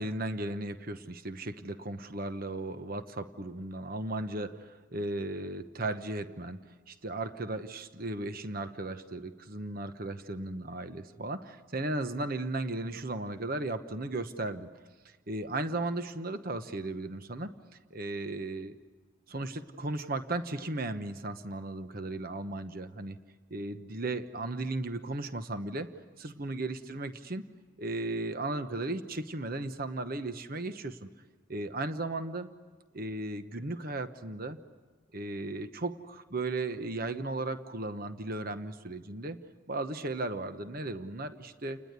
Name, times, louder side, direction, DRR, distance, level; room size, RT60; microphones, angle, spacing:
voice 1, 0.0-6.6 6.9-14.7 15.3-17.5 17.9-18.8 19.3-23.2 23.5-25.9 26.2-27.4 27.8-31.1 31.5-32.5 32.9-34.6 35.1-39.4 39.7-41.8, right 2 dB, 45° right, 9 dB, 1.1 m, -36 dB
30.0 x 20.0 x 8.3 m, 1.4 s
head